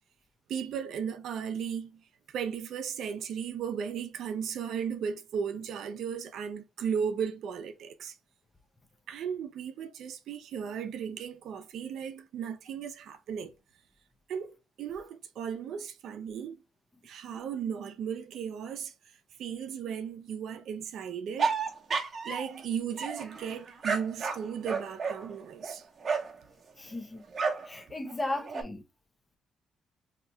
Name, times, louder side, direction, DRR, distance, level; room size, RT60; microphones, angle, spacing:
voice 1, 0.5-2.0 2.3-8.1 9.1-13.5 14.3-16.6 17.0-18.9 19.4-21.6 22.2-25.8, right 7 dB, 75° right, 0.6 m, -36 dB
sound 1, 21.4-22.6 23.0-26.4 27.3-27.7 28.1-28.6, right 5 dB, 45° right, 0.9 m, -32 dB
voice 2, 26.8-27.2 27.6-28.8, left 1 dB, 20° left, 0.7 m, -35 dB
2.8 x 2.3 x 4.0 m
cardioid pair, 90°, 0 cm